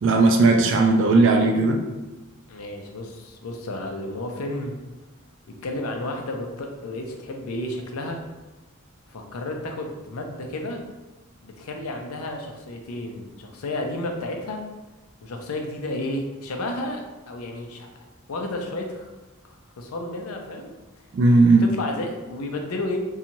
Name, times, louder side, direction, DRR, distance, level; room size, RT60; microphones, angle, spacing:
voice 1, 0.0-1.8 21.1-21.7, right 3 dB, 55° right, 3 dB, 0.3 m, -17 dB
voice 2, 2.5-4.8 5.5-8.2 9.1-10.8 11.4-14.6 15.2-19.1 19.5-20.7 21.6-23.0, left 1 dB, 90° left, 3 dB, 0.5 m, -32 dB
2.6 x 2.3 x 2.9 m, 1.1 s
head